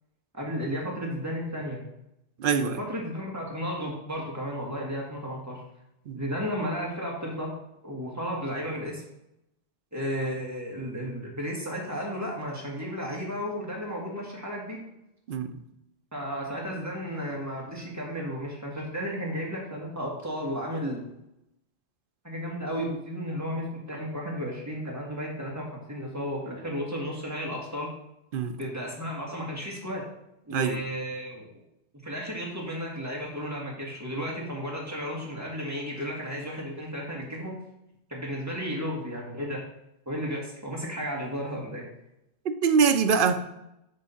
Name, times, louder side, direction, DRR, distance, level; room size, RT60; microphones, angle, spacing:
voice 1, 0.3-1.8 2.6-5.6 6.1-7.5 7.8-9.0 9.9-14.8 16.1-21.1 22.2-27.9 28.6-30.0 30.5-31.5 32.0-37.6 38.1-39.6 40.1-41.9, equal, 15° right, 1.7 m, -33 dB
voice 2, 2.4-2.8 6.1-6.2 15.3-15.6 28.3-28.6 30.5-30.8 42.4-43.5, right 6 dB, 60° right, 0.7 m, -24 dB
6.9 x 3.6 x 5.6 m
omnidirectional pair, 1.2 m